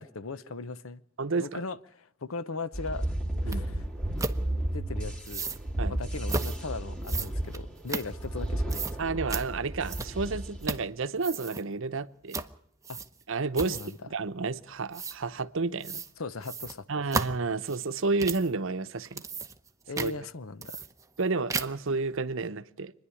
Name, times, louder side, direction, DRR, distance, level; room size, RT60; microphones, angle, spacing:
voice 1, 0.0-1.0 1.4-3.1 3.4-3.8 4.7-5.5 5.9-9.2 12.9-13.0 13.7-14.0 16.2-16.9 19.9-20.8, left 3 dB, 80° left, 0.8 m, -38 dB
voice 2, 1.2-1.6 3.4-3.6 5.8-6.0 9.0-12.4 13.3-13.8 14.1-16.0 16.9-19.2 20.0-20.1 21.2-22.9, right 3 dB, 70° right, 0.8 m, -31 dB
sound 1, 2.7-10.8, right 1 dB, 5° left, 2.7 m, -33 dB
sound 2, 3.5-3.6 4.2-4.4 5.2-5.6 6.3-6.6 7.0-8.4 8.7-9.0 9.3-9.5 9.9-10.3 10.6-10.9 11.2-11.6 12.3-12.5 12.8-13.2 13.5-14.0 14.9-15.2 15.8-16.1 16.4-18.5 19.0-19.7 20.0-20.1 20.6-21.2 21.5-21.9, right 3 dB, 15° right, 0.9 m, -34 dB
25.5 x 10.5 x 9.9 m
head